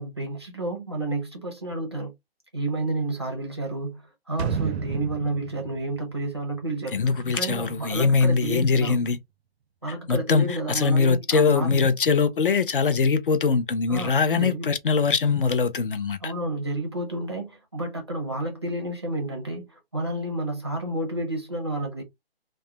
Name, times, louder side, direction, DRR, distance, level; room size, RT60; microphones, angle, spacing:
voice 1, 0.0-2.1 2.5-9.0 9.8-11.8 13.9-14.7 16.2-22.0, right 2 dB, 25° right, 0.5 m, -30 dB
sound 1, 4.4-7.2 7.5-7.6, right 7 dB, 85° right, 0.5 m, -32 dB
voice 2, 6.9-9.2 10.1-16.3, left 5 dB, 55° left, 0.5 m, -22 dB
2.3 x 2.1 x 2.7 m
hypercardioid pair, 180°, 32 cm